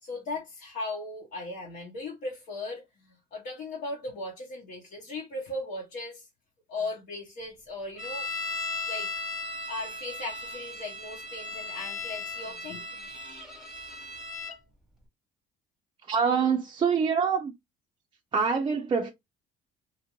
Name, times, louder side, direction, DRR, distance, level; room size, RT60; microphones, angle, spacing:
voice 1, 0.0-6.3 6.7-8.3 8.9-9.1 9.7-13.1, left 2 dB, 70° left, 1.0 m, -37 dB
sound 1, 8.0-14.6, left 3 dB, 5° right, 0.9 m, -37 dB
voice 2, 16.1-17.5 18.3-19.1, right 6 dB, 30° right, 0.4 m, -25 dB
2.6 x 2.5 x 2.9 m
cardioid pair, 110°, 17 cm